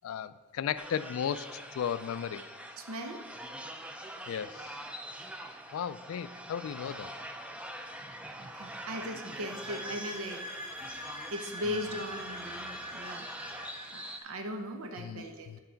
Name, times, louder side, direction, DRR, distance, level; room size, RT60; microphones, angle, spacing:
voice 1, 0.0-2.4 4.3-4.8 5.7-7.1 11.7-11.8 15.0-15.6, left 8 dB, 75° left, 15 dB, 0.3 m, -35 dB
sound 1, 0.8-14.2, right 1 dB, 5° right, 0.3 m, -44 dB
voice 2, 2.8-3.3 8.4-13.3 13.9-15.5, equal, 85° right, 6 dB, 0.8 m, -39 dB
sound 2, 9.2-14.3, left 1 dB, 55° right, 1.7 m, -45 dB
7.8 x 4.8 x 5.7 m, 1.4 s
head